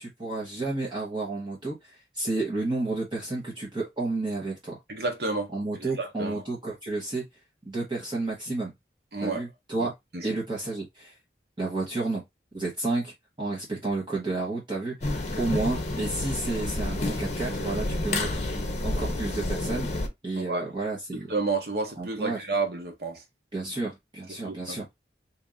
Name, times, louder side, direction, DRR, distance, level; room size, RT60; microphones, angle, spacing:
voice 1, 0.0-4.8 5.5-7.2 7.6-8.7 9.2-9.9 10.2-11.1 11.6-12.2 12.5-19.9 20.2-21.3 22.0-22.4 23.5-24.9, right 2 dB, 25° right, 1.1 m, -31 dB
voice 2, 4.9-5.5 5.8-6.3 9.1-9.4 10.1-10.2 20.4-20.7 21.3-23.2 24.5-24.8, right 3 dB, 60° right, 1.0 m, -30 dB
sound 1, 15.0-20.1, left 2 dB, 40° left, 0.7 m, -29 dB
3.0 x 2.6 x 3.6 m
head